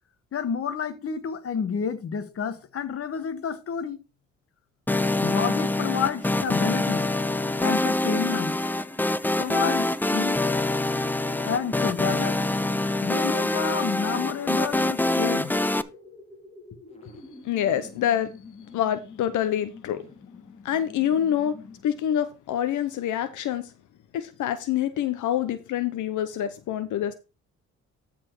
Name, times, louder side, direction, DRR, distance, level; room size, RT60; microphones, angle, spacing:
voice 1, 0.3-4.0 5.2-7.1 7.6-8.6 9.4-10.4 11.4-12.4 13.0-15.5, left 6 dB, 50° left, 1.2 m, -29 dB
sound 1, 4.9-15.8, left 2 dB, 5° left, 0.5 m, -25 dB
sound 2, 8.5-22.1, left 2 dB, 20° left, 2.6 m, -47 dB
voice 2, 17.4-18.3 18.7-20.0 20.6-21.5 21.8-23.7 24.1-27.1, left 10 dB, 75° left, 0.8 m, -26 dB
13.0 x 4.3 x 4.5 m
cardioid pair, 90°, 30 cm